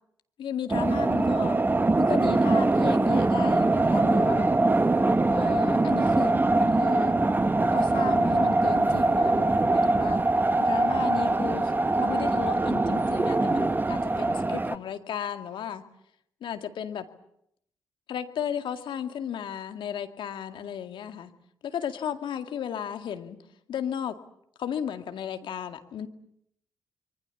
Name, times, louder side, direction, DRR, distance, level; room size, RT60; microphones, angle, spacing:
voice 1, 0.4-1.6 2.0-4.5 5.3-7.1 7.7-10.2 10.6-11.7 12.0-15.8 16.4-17.1 18.1-21.3 21.6-23.4 23.7-24.2 24.6-26.1, left 9 dB, 65° left, 7 dB, 2.1 m, -34 dB
sound 1, 0.7-14.8, right 2 dB, 20° right, 1.2 m, -23 dB
25.5 x 24.0 x 7.2 m, 0.74 s
hypercardioid pair, 45°, 9 cm